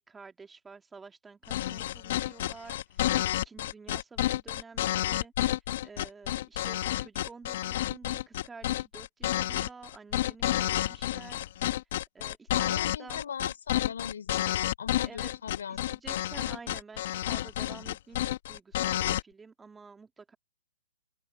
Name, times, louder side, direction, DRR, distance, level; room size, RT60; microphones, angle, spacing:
voice 1, 0.0-5.3 5.8-11.4 12.1-13.2 15.0-15.3 15.7-20.4, right 4 dB, 10° right, 2.1 m, -50 dB
sound 1, 1.5-19.2, left 13 dB, 50° left, 1.3 m, -30 dB
voice 2, 12.5-15.8, left 7 dB, 75° left, 3.8 m, -39 dB
open air
hypercardioid pair, 145°, 0 cm